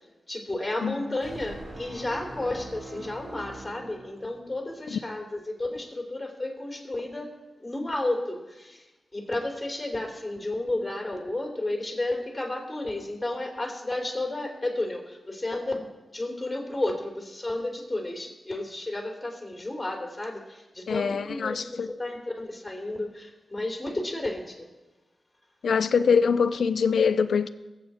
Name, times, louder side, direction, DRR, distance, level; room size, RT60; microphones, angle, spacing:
voice 1, 0.3-8.8 9.1-15.9 16.1-24.7, left 2 dB, 15° left, 3.2 m, -32 dB
sound 1, 1.2-4.7, right 1 dB, 45° right, 2.5 m, -42 dB
voice 2, 20.9-21.9 25.6-27.5, left 6 dB, 80° left, 0.5 m, -24 dB
20.0 x 8.1 x 4.3 m
wide cardioid pair, 90°, 0 cm